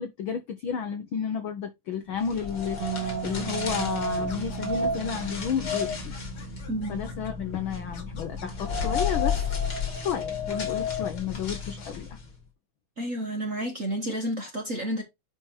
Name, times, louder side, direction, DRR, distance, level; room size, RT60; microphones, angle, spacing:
voice 1, 0.0-6.2 6.9-9.4 9.9-12.2, left 7 dB, 70° left, 1.2 m, -32 dB
sound 1, 2.3-12.2, left 4 dB, 35° left, 2.7 m, -31 dB
Bass guitar, 2.8-9.1, right 17 dB, 80° right, 3.3 m, -39 dB
sound 2, 2.9-3.6 4.3-5.5 6.1-7.3 7.9-9.7 10.5-10.7 11.6-11.8, left 5 dB, 50° left, 2.6 m, -49 dB
voice 2, 6.7-7.1 13.0-15.0, right 1 dB, 40° right, 1.2 m, -31 dB
10.5 x 3.6 x 4.3 m
omnidirectional pair, 3.4 m